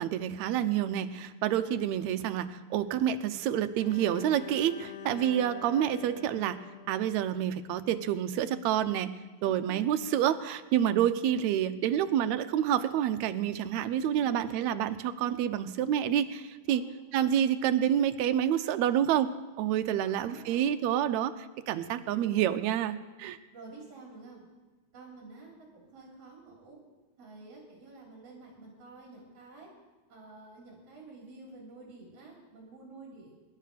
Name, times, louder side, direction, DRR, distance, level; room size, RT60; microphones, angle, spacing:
voice 1, 0.0-6.6 6.9-9.1 9.4-16.8 17.1-19.3 19.6-23.4, right 10 dB, 75° right, 9 dB, 2.0 m, -28 dB
Bowed string instrument, 3.8-7.8, left 13 dB, 90° left, 2.3 m, -47 dB
voice 2, 9.4-10.1 14.1-14.4 16.7-16.9 20.0-20.6 23.5-24.4 24.9-26.8 27.2-29.7 30.1-33.3, right 3 dB, 55° right, -3 dB, 4.3 m, -50 dB
24.5 x 11.5 x 5.0 m, 1.2 s
omnidirectional pair, 3.4 m